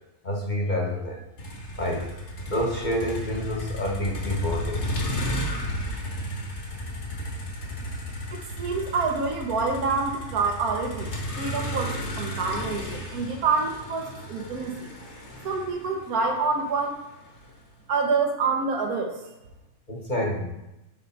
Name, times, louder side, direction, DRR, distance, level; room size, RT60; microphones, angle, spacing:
voice 1, 0.2-1.2 1.8-2.1 2.4-4.8 19.9-20.4, left 1 dB, 35° left, -1 dB, 0.9 m, -28 dB
Motor vehicle (road), 1.4-17.5, equal, 55° left, 1.5 m, -33 dB
voice 2, 8.3-14.9 15.4-17.0 17.9-19.2, right 4 dB, 85° right, 2 dB, 1.5 m, -27 dB
8.9 x 3.2 x 4.1 m, 0.96 s
omnidirectional pair, 1.5 m